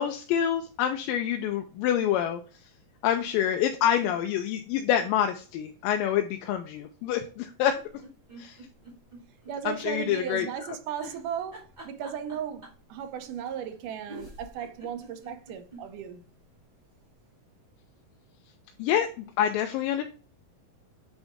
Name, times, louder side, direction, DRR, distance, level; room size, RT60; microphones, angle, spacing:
voice 1, 0.0-2.4 3.0-7.8 8.4-8.6 9.7-10.5 18.8-19.1 19.4-20.0, left 10 dB, 85° left, 2.3 m, -26 dB
sound 1, 7.7-9.6 9.9-10.0 11.0-12.9 13.7-13.8 14.1-15.8 16.3-16.4 16.6-16.7, right 1 dB, 15° right, 1.9 m, -46 dB
voice 2, 9.5-16.2, right 8 dB, 75° right, 2.2 m, -36 dB
8.1 x 3.9 x 3.5 m
omnidirectional pair, 4.0 m